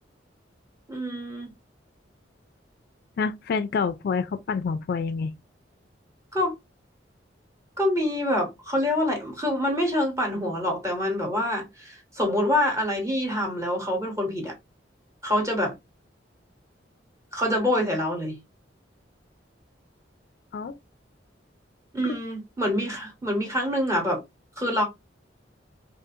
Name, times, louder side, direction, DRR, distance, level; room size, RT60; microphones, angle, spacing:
voice 1, 0.9-1.5 6.3-6.5 7.8-14.5 15.2-15.7 17.3-18.4 21.9-24.2 24.6-24.8, left 1 dB, 15° right, 1.1 m, -26 dB
voice 2, 3.2-5.3 20.5-20.8 22.0-22.2, left 5 dB, 55° left, 0.3 m, -27 dB
2.4 x 2.4 x 2.6 m
head